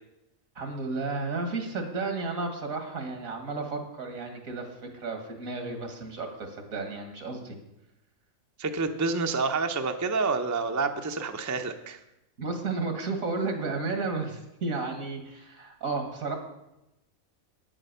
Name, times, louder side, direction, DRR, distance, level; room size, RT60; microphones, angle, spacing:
voice 1, 0.6-4.7 4.9-7.6 12.4-16.4, right 3 dB, 80° right, 5 dB, 2.1 m, -32 dB
voice 2, 8.6-12.0, right 4 dB, 20° right, 6 dB, 0.5 m, -28 dB
9.5 x 8.7 x 6.7 m, 0.91 s
omnidirectional pair, 1.4 m